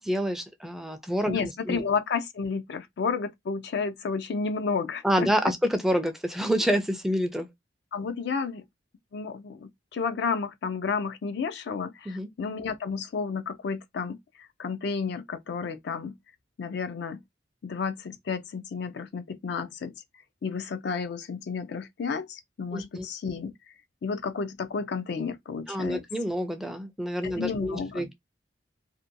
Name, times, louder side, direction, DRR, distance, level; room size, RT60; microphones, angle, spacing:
voice 1, 0.0-1.8 5.0-7.5 12.1-12.3 22.7-23.1 25.7-28.1, equal, ahead, 0.4 m, -28 dB
voice 2, 1.3-5.3 7.9-8.6 9.1-16.2 16.6-17.2 17.6-19.9 20.4-23.5 24.0-26.0 27.2-28.1, left 5 dB, 65° left, 0.4 m, -31 dB
2.6 x 2.2 x 2.5 m
head